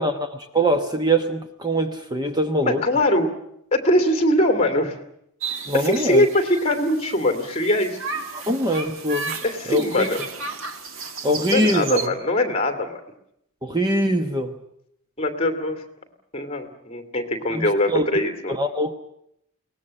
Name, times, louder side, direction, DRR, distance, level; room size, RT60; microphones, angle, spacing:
voice 1, 0.0-2.8 5.7-6.3 8.3-9.4 9.6-10.1 11.2-12.1 13.6-14.6 17.5-18.1 18.5-18.9, right 1 dB, 20° right, 6 dB, 1.0 m, -23 dB
voice 2, 2.6-3.3 3.7-5.0 5.7-8.0 9.4-10.2 11.5-13.0 15.2-15.8 16.3-18.5, left 1 dB, 25° left, 7 dB, 2.5 m, -22 dB
sound 1, 5.4-12.1, right 4 dB, 65° right, 1.8 m, -33 dB
22.5 x 19.0 x 8.7 m, 0.75 s
head